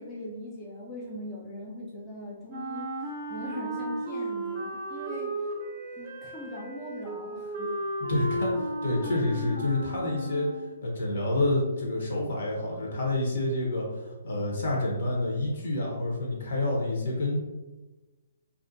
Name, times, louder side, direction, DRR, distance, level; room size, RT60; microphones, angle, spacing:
voice 1, 0.0-2.9 3.3-5.5 6.0-7.7, left 1 dB, 15° left, -5 dB, 0.4 m, -40 dB
Wind instrument woodwind instrument, 2.5-10.8, right 1 dB, 35° right, 0.5 m, -34 dB
voice 2, 8.1-10.5 10.8-17.4, left 2 dB, 65° left, -2 dB, 0.8 m, -28 dB
2.5 x 2.1 x 2.6 m, 1.1 s
hypercardioid pair, 155°, 0 cm